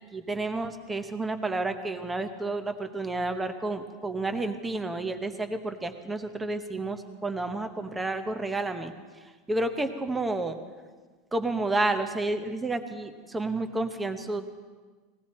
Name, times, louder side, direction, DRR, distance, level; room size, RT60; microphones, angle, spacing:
voice 1, 0.1-8.9 9.5-10.6 11.3-14.4, right 2 dB, 10° right, 7 dB, 0.9 m, -30 dB
20.0 x 16.0 x 4.3 m, 1.4 s
supercardioid pair, 165°, 0 cm